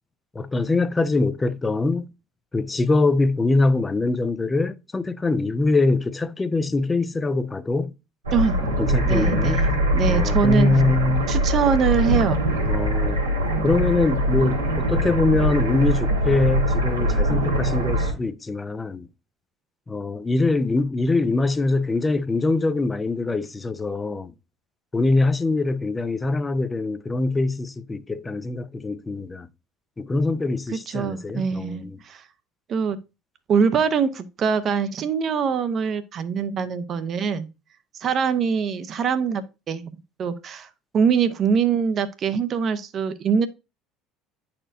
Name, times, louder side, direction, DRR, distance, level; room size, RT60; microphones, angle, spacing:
voice 1, 0.3-2.1 2.5-7.9 8.8-9.6 10.1-11.3 12.7-13.2 13.6-19.1 19.9-24.3 24.9-29.5 30.0-32.0, left 3 dB, 20° left, 0.5 m, -23 dB
sound 1, 8.2-18.1, equal, 90° right, 1.3 m, -22 dB
voice 2, 8.3-10.7 11.3-12.4 30.9-32.2 32.7-33.0 33.5-37.5 37.9-39.9 40.2-40.7 40.9-43.5, right 6 dB, 45° right, 0.7 m, -23 dB
9.8 x 4.3 x 2.5 m
figure-of-eight pair, 65°, 0 cm